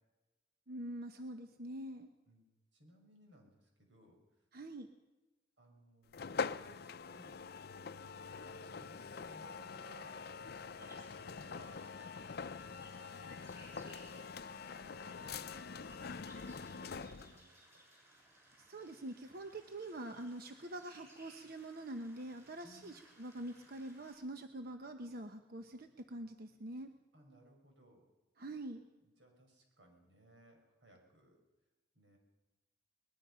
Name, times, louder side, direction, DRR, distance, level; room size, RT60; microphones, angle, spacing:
voice 1, 0.7-2.1 4.5-4.9 18.6-26.9 28.4-28.8, right 1 dB, 55° right, 6 dB, 1.0 m, -45 dB
voice 2, 2.7-4.5 5.6-7.5 8.0-11.8 12.4-12.9 13.8-15.5 16.3-17.9 22.6-23.0 27.1-28.0 29.0-31.4 31.9-32.2, right 1 dB, 85° right, 2 dB, 6.1 m, -63 dB
sound 1, 6.1-17.4, left 5 dB, 55° left, 0.6 m, -44 dB
sound 2, 10.8-24.1, right 1 dB, 15° right, 7.0 m, -63 dB
22.0 x 21.0 x 5.7 m, 1.1 s
head